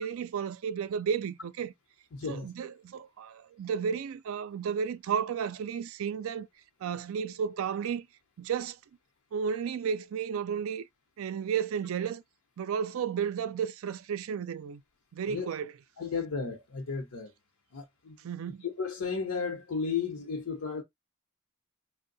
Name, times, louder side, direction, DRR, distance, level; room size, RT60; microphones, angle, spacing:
voice 1, 0.0-1.7 2.3-6.5 6.8-8.1 8.4-8.8 9.3-10.9 11.2-12.2 12.6-14.8 15.1-15.7 18.2-18.7, right 7 dB, 70° right, 0.4 m, -33 dB
voice 2, 2.1-2.5 15.3-15.5 16.0-17.3 17.7-18.2 18.6-20.8, left 5 dB, 85° left, 0.8 m, -34 dB
2.6 x 2.0 x 3.9 m
head